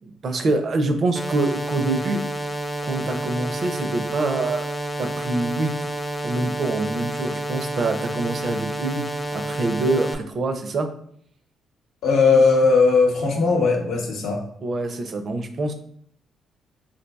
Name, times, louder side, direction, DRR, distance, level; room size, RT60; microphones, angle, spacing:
voice 1, 0.0-2.2 2.8-4.7 5.0-5.7 6.2-10.9 14.6-15.7, right 2 dB, 50° right, 7 dB, 0.4 m, -25 dB
sound 1, 1.1-10.1, right 1 dB, 10° left, 0.4 m, -29 dB
voice 2, 12.0-14.4, left 4 dB, 80° left, 0 dB, 0.8 m, -18 dB
3.9 x 2.7 x 2.3 m, 0.65 s
cardioid pair, 90°, 0 cm